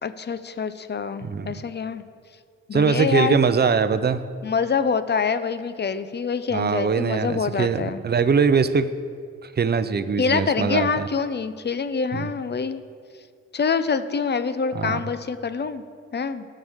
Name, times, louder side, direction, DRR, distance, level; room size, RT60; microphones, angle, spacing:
voice 1, 0.0-2.0 2.7-3.4 4.4-8.0 10.2-12.8 13.5-15.8 16.1-16.5, left 5 dB, 35° left, 12 dB, 0.7 m, -25 dB
voice 2, 1.2-1.5 2.7-4.2 6.5-8.9 9.4-11.1 12.1-12.3 14.7-15.1, right 5 dB, 35° right, 13 dB, 0.6 m, -22 dB
18.0 x 6.5 x 3.6 m, 2.1 s
cardioid pair, 75°, 29 cm